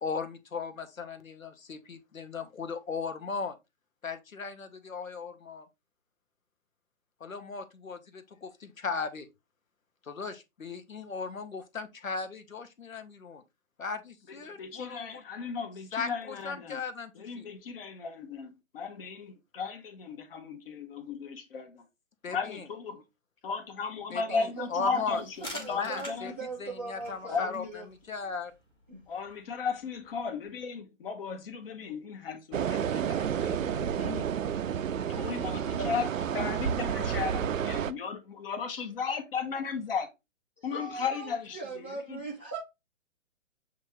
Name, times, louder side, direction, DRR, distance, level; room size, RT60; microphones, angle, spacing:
voice 1, 0.0-3.6 4.0-5.7 7.2-8.5 8.8-9.3 10.0-13.4 13.8-15.2 15.9-17.5 22.2-22.7 22.9-23.0 24.1-25.2 25.7-26.3 26.6-28.5, left 5 dB, 85° left, 0.9 m, -37 dB
voice 2, 14.4-16.8 17.2-21.8 22.3-23.0 23.4-26.3 27.2-27.7 29.1-34.3 34.9-36.1 36.3-40.1 40.6-42.2, left 5 dB, 45° left, 1.0 m, -35 dB
voice 3, 24.2-27.9 28.2-28.3 28.9-29.0 34.7-35.9 40.6-42.6, right 3 dB, 10° right, 0.4 m, -41 dB
sound 1, 25.1-30.6, left 1 dB, 10° left, 1.0 m, -49 dB
sound 2, 32.5-37.9, right 8 dB, 75° right, 0.5 m, -30 dB
7.2 x 2.4 x 2.9 m
figure-of-eight pair, 130°, 39 cm